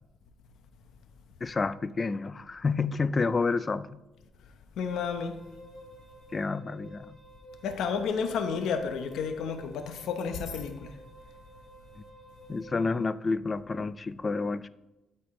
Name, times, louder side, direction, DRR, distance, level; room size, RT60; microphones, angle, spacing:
voice 1, 1.4-4.0 6.3-7.2 12.0-12.1 12.5-14.7, left 4 dB, 30° left, 0.3 m, -29 dB
voice 2, 4.8-5.4 7.6-10.9, left 6 dB, 80° left, 0.8 m, -31 dB
Wind instrument woodwind instrument, 5.2-13.1, right 1 dB, 5° left, 2.0 m, -52 dB
12.5 x 4.4 x 3.1 m
cardioid pair, 90°, 0 cm